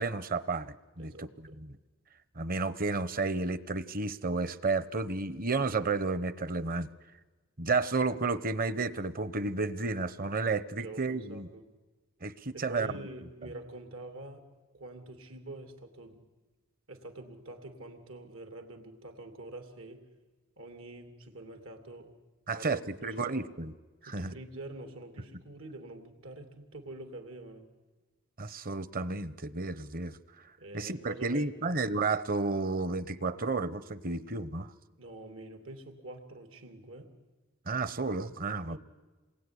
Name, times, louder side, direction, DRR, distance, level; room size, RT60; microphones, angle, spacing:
voice 1, 0.0-1.3 1.6-1.8 2.4-6.9 7.6-11.5 12.2-12.9 22.5-23.7 24.0-24.3 28.4-30.2 30.7-34.7 37.7-38.8, right 3 dB, 45° right, 0.9 m, -32 dB
voice 2, 1.0-1.6 10.8-11.7 12.5-14.4 14.7-16.2 16.9-20.1 20.6-22.1 22.5-23.5 24.1-27.7 30.6-31.7 35.0-37.1 38.7-38.8, right 2 dB, 85° right, 3.0 m, -46 dB
28.0 x 21.5 x 10.0 m
head